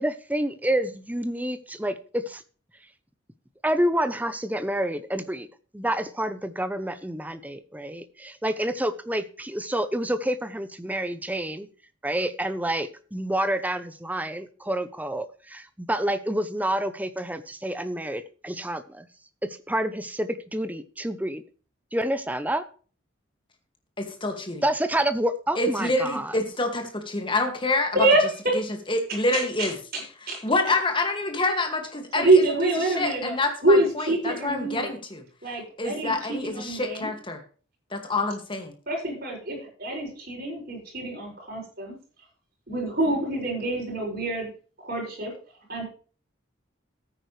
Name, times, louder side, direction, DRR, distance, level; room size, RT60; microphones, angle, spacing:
voice 1, 0.0-2.4 3.6-5.5 5.7-11.7 12.0-19.1 19.4-21.4 21.9-22.6 24.6-26.5, right 1 dB, 10° right, 12 dB, 0.8 m, -28 dB
voice 2, 24.0-24.6 25.6-28.0 28.5-29.7 30.2-35.2 35.8-37.4 37.9-38.7, left 2 dB, 25° left, 5 dB, 2.1 m, -27 dB
voice 3, 29.3-30.4 32.1-33.3 33.6-34.9 35.4-37.1 38.9-41.9 42.7-44.5 44.8-45.3 45.7-45.8, right 2 dB, 50° right, -1 dB, 6.5 m, -25 dB
15.0 x 9.1 x 3.3 m, 0.39 s
head